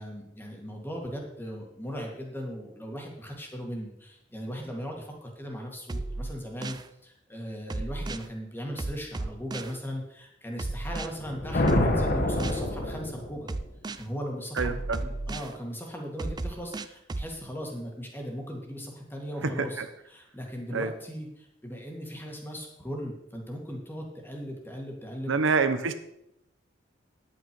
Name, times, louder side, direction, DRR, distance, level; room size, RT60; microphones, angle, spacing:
voice 1, 0.0-6.8 7.0-13.5 14.0-25.4, equal, 10° left, 1 dB, 1.9 m, -38 dB
sound 1, 5.9-6.9 7.7-8.3 8.8-9.8 10.6-11.1 11.7-12.6 13.5-14.0 14.6-15.5 16.2-17.3, right 2 dB, 20° right, 0.4 m, -34 dB
sound 2, 11.1-13.6, left 1 dB, 50° left, 1.3 m, -27 dB
voice 2, 14.6-15.0 19.4-19.8 20.7-20.9 25.3-25.9, right 4 dB, 90° right, 10 dB, 0.8 m, -26 dB
9.9 x 8.9 x 4.6 m, 0.81 s
head